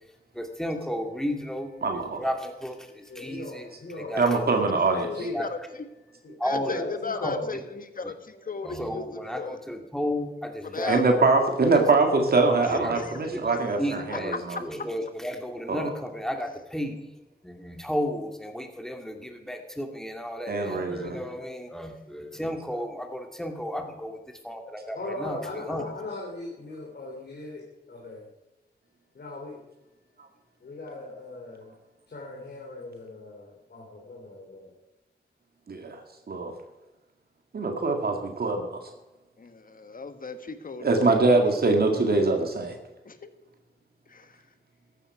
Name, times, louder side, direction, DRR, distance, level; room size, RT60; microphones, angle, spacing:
voice 1, 0.3-4.5 5.3-5.8 6.4-7.6 8.0-8.1 8.6-11.2 11.6-11.8 12.7-17.0 17.4-25.9, equal, 5° left, 4 dB, 2.1 m, -33 dB
voice 2, 1.8-2.2 4.2-5.1 10.9-13.8 14.5-14.6 15.7-15.8 20.5-21.2 35.7-36.0 36.3-36.5 37.5-38.7 40.8-42.8, right 3 dB, 65° right, 4 dB, 2.0 m, -23 dB
voice 3, 3.1-5.5 6.2-6.3 6.7-7.6 24.9-28.3 29.1-29.6 30.6-31.7 32.1-34.7, left 2 dB, 75° left, -2 dB, 3.2 m, -38 dB
voice 4, 5.0-5.6 6.4-8.1 8.5-9.6 10.7-11.0 12.6-13.1 39.4-41.5 41.9-42.4 43.0-43.3 44.1-44.4, left 4 dB, 55° left, 10 dB, 1.4 m, -36 dB
14.5 x 11.5 x 4.9 m, 1.0 s
wide cardioid pair, 95°, 17 cm